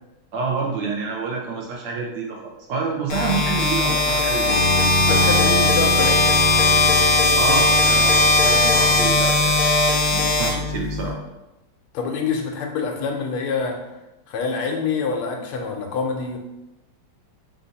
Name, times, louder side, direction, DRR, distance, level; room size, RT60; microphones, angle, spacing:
voice 1, 0.3-4.6 7.3-9.6 10.1-11.2, right 4 dB, 75° right, 0 dB, 0.9 m, -28 dB
sound 1, 3.1-11.1, left 2 dB, 65° left, 1.2 m, -18 dB
Bowed string instrument, 4.4-9.4, equal, 40° right, 0.9 m, -26 dB
voice 2, 5.0-6.2 11.9-13.8 14.3-16.4, left 5 dB, 80° left, 3 dB, 1.5 m, -26 dB
4.0 x 2.5 x 3.9 m, 0.98 s
omnidirectional pair, 2.4 m